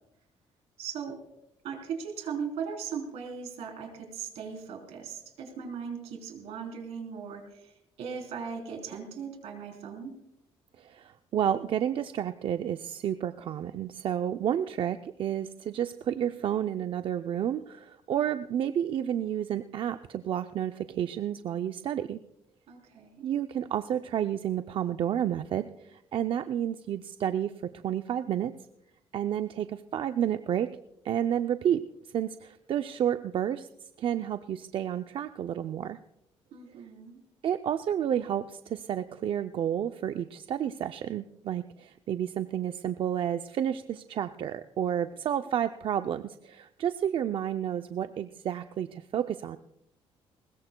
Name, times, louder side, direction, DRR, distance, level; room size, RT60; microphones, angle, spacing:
voice 1, 0.8-1.2 1.6-10.1 22.7-23.3 36.5-37.2, right 6 dB, 75° right, 3 dB, 3.6 m, -38 dB
voice 2, 10.8-22.2 23.2-27.5 27.8-28.5 29.1-30.7 31.0-31.8 32.1-33.7 34.0-36.0 37.4-49.6, right 10 dB, 55° right, 9 dB, 0.5 m, -30 dB
20.5 x 20.5 x 2.2 m, 0.81 s
cardioid pair, 130°, 11 cm